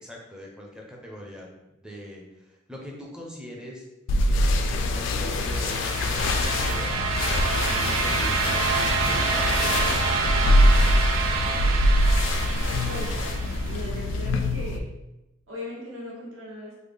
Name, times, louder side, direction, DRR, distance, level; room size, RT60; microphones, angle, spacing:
voice 1, 0.0-3.9 4.3-7.0 7.7-11.8, equal, 5° right, -2 dB, 0.5 m, -43 dB
sound 1, 4.1-14.8, left 1 dB, 65° left, 0.3 m, -24 dB
sound 2, 5.0-13.9, right 4 dB, 85° right, 0.4 m, -27 dB
voice 2, 12.9-13.3 13.6-14.8 15.5-16.7, left 1 dB, 65° right, -6 dB, 1.2 m, -38 dB
3.2 x 2.1 x 3.4 m, 0.95 s
head